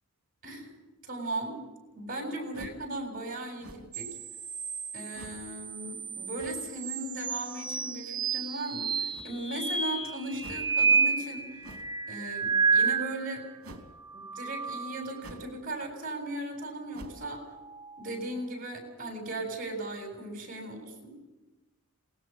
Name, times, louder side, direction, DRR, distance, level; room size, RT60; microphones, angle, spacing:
voice 1, 1.0-1.6 1.9-4.1 4.9-11.6 12.1-13.4 14.1-17.4 18.0-21.2, right 2 dB, 40° right, 2 dB, 7.7 m, -37 dB
sound 1, 2.5-2.9 3.6-4.1 5.1-5.5 6.3-6.7 9.1-9.6 10.4-10.7 11.6-12.0 13.6-13.9 15.2-15.6 15.9-16.0 16.9-17.3, right 1 dB, 65° right, 3.1 m, -47 dB
sound 2, 3.9-13.5 13.9-15.3 17.1-18.3, right 5 dB, 20° right, 2.5 m, -31 dB
27.5 x 21.0 x 5.5 m, 1.1 s
head